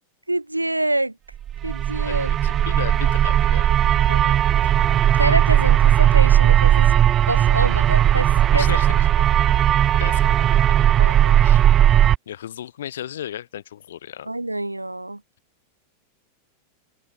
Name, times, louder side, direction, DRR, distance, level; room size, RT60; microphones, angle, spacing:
voice 1, 0.3-1.2 1.6-2.3 4.1-4.4 5.1-6.9 7.3-8.7 11.0-11.4 14.3-15.2, right 1 dB, 85° right, 5.3 m, -26 dB
sound 1, 1.5-12.2, right 11 dB, 30° right, 1.0 m, -17 dB
voice 2, 2.1-3.7 8.5-8.9 10.0-10.4 11.4-11.7 12.3-14.3, left 11 dB, 60° left, 5.5 m, -34 dB
open air
figure-of-eight pair, 90°, 0 cm